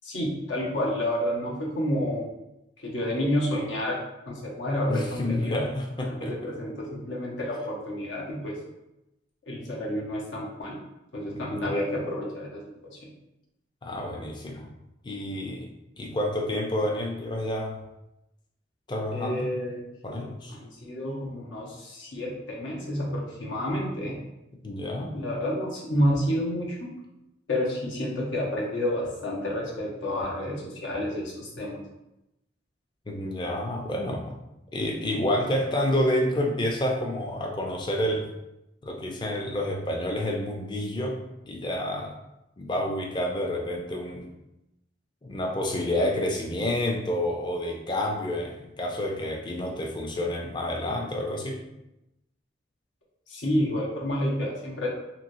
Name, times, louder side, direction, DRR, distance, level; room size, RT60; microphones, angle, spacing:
voice 1, 0.0-2.2 2.8-4.0 4.3-5.6 6.0-8.6 9.5-10.8 11.1-12.6 13.0-13.1 19.1-19.8 20.5-24.2 25.1-26.9 27.5-31.8 53.3-54.9, left 1 dB, 85° left, -3 dB, 0.8 m, -29 dB
voice 2, 4.9-6.3 11.3-11.8 13.8-14.7 15.0-15.7 16.0-17.8 18.9-19.5 20.0-20.6 24.6-25.1 33.1-34.3 34.7-38.3 38.8-41.2 41.5-42.1 42.6-44.3 45.2-51.6, left 1 dB, 25° left, 1 dB, 0.4 m, -29 dB
3.0 x 3.0 x 2.6 m, 0.90 s
head